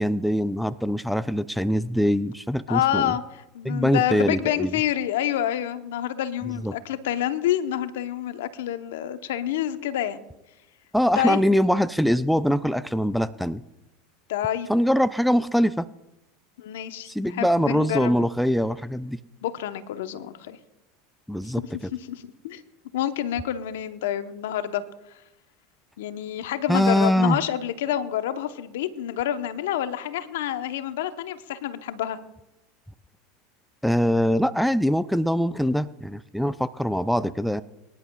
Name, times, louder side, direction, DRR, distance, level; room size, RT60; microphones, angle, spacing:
voice 1, 0.0-3.1 3.6-4.7 6.6-6.7 10.9-13.6 14.7-15.9 17.1-19.2 21.3-21.9 26.7-27.4 33.8-37.6, equal, ahead, 15 dB, 0.4 m, -23 dB
voice 2, 2.7-3.2 3.5-10.2 11.2-11.4 14.3-14.7 16.6-18.3 19.4-20.6 21.6-21.7 22.1-22.6 22.9-24.8 26.0-32.2, left 11 dB, 75° left, 11 dB, 0.8 m, -28 dB
24.0 x 11.0 x 2.3 m, 0.92 s
hypercardioid pair, 90°, 0 cm